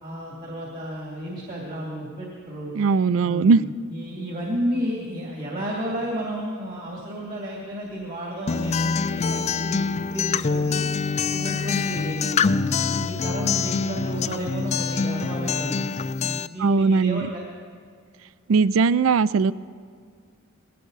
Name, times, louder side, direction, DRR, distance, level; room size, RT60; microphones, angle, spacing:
voice 1, 0.0-2.8 3.2-10.8 11.3-15.8 16.2-17.4, equal, 40° right, -3 dB, 2.5 m, -32 dB
voice 2, 2.7-3.6 16.6-17.3 18.5-19.5, right 4 dB, 70° right, 18 dB, 0.4 m, -19 dB
Acoustic guitar, 8.5-16.5, left 5 dB, 30° left, 0.3 m, -25 dB
20.0 x 18.0 x 4.0 m, 2.1 s
head